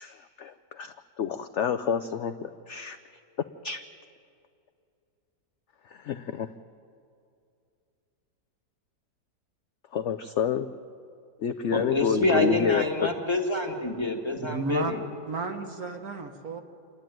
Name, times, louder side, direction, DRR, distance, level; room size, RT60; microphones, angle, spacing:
voice 1, 0.0-3.0 3.6-3.8 6.0-6.5 9.9-10.7 11.4-13.1, left 8 dB, 70° left, 9 dB, 0.7 m, -29 dB
voice 2, 11.7-15.0, left 2 dB, 15° left, 3 dB, 1.6 m, -27 dB
voice 3, 14.4-14.9 15.3-16.6, right 3 dB, 60° right, 5 dB, 1.7 m, -32 dB
28.0 x 11.0 x 9.1 m, 2.5 s
omnidirectional pair, 1.8 m